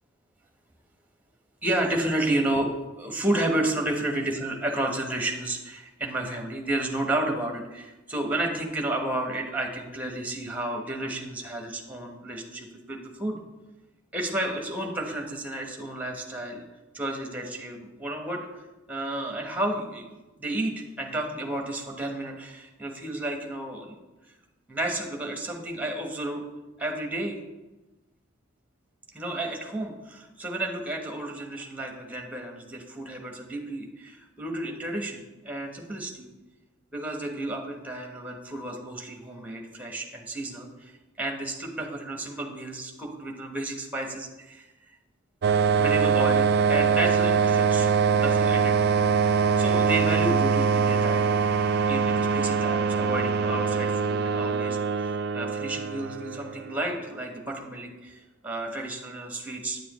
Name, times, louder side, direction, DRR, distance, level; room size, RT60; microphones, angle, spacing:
voice 1, 1.6-13.4 14.1-16.6 16.9-18.6 18.9-20.0 20.4-24.0 24.7-26.4 26.8-27.4 29.1-36.3 36.9-40.9 41.2-44.6 45.8-48.8 49.6-51.3 51.9-59.8, right 1 dB, 5° right, 2 dB, 1.0 m, -31 dB
sound 1, 45.4-56.8, right 5 dB, 50° right, 0.3 m, -23 dB
9.3 x 7.5 x 3.0 m, 1.1 s
head